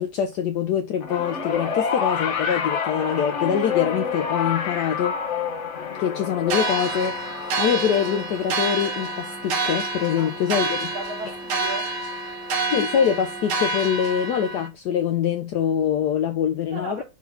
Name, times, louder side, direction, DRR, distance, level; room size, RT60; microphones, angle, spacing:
voice 1, 0.0-5.1 6.0-7.1 7.6-10.9 12.7-17.0, left 8 dB, 70° left, 1.1 m, -24 dB
sound 1, 1.0-11.4 12.5-12.6, left 6 dB, 45° left, 1.1 m, -29 dB
sound 2, 6.5-14.7, right 3 dB, 65° right, 1.8 m, -28 dB
voice 2, 10.2-12.0 16.7-17.0, right 4 dB, 45° right, 3.4 m, -36 dB
5.8 x 3.8 x 5.9 m
omnidirectional pair, 2.0 m